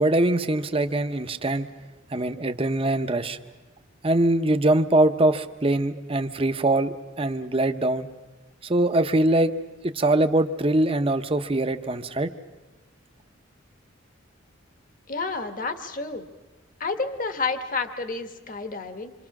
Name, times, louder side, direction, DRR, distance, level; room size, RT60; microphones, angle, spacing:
voice 1, 0.0-1.7 2.1-3.4 4.0-8.1 8.7-9.5 9.8-12.3, right 1 dB, 30° right, 8 dB, 0.8 m, -22 dB
voice 2, 15.1-16.3 16.8-19.1, left 4 dB, 45° left, 7 dB, 1.4 m, -30 dB
26.5 x 25.5 x 6.0 m, 1.2 s
head